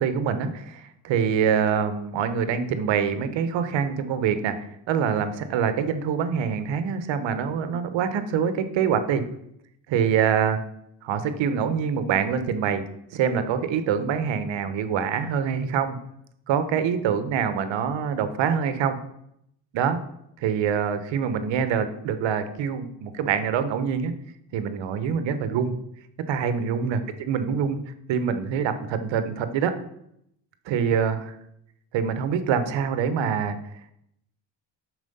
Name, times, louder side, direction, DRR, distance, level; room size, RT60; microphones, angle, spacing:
voice 1, 0.0-4.5 4.9-9.2 9.9-10.6 11.0-12.8 13.1-16.0 16.5-19.0 19.7-20.0 20.4-24.1 24.5-25.7 26.3-27.8 28.1-29.7 30.7-31.3 31.9-33.6, right 7 dB, 70° right, 10 dB, 1.0 m, -25 dB
6.2 x 4.9 x 5.4 m, 0.75 s
supercardioid pair, 65°, 46 cm